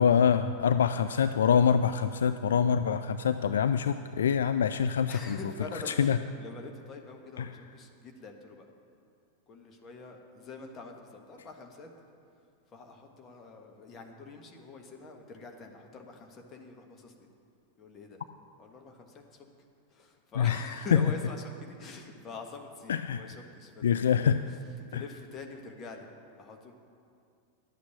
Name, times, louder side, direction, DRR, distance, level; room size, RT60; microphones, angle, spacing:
voice 1, 0.0-5.4 5.9-6.2 7.4-7.5 20.4-20.7 20.9-21.0 22.9-23.3 23.8-24.4 24.9-25.0, left 7 dB, 65° left, 10 dB, 0.3 m, -25 dB
voice 2, 5.1-8.7 9.5-11.9 12.7-17.1 17.8-18.2 18.6-19.5 19.9-26.1 26.4-26.7, left 3 dB, 25° left, 2 dB, 1.5 m, -45 dB
11.5 x 8.4 x 6.7 m, 2.4 s
figure-of-eight pair, 90°, 0 cm